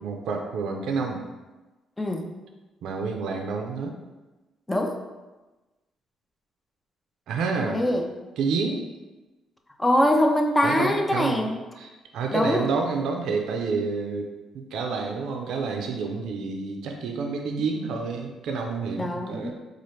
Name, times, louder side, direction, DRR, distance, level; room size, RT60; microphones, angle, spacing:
voice 1, 0.0-1.2 2.8-4.0 7.3-7.8 8.4-8.8 10.6-11.5 11.8-14.3 14.5-19.5, right 4 dB, 80° right, 3 dB, 0.4 m, -29 dB
voice 2, 2.0-2.3 4.7-4.9 7.7-8.1 9.8-11.5 12.3-12.7 19.0-19.5, left 1 dB, 15° left, 2 dB, 0.5 m, -23 dB
4.1 x 2.4 x 3.1 m, 1.1 s
cardioid pair, 90°, 0 cm